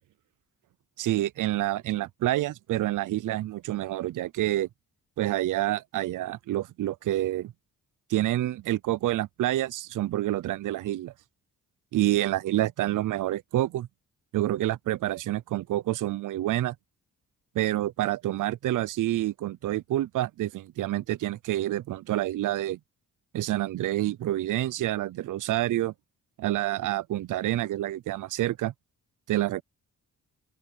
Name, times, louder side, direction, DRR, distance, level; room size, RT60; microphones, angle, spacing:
voice 1, 1.0-4.7 5.2-7.5 8.1-11.1 11.9-13.9 14.3-16.7 17.5-22.8 23.3-25.9 26.4-28.7 29.3-29.6, right 14 dB, 65° right, 0.5 m, -28 dB
open air
wide cardioid pair, 150°, 35 cm